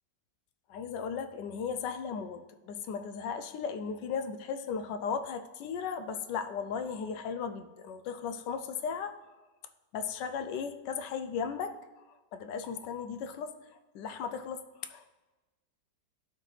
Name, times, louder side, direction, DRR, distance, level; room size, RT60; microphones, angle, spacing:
voice 1, 0.7-9.1 9.9-11.8 12.3-13.5 13.9-14.6 14.9-15.2, left 6 dB, 80° left, 9 dB, 1.2 m, -36 dB
12.0 x 4.5 x 3.3 m, 1.2 s
omnidirectional pair, 1.9 m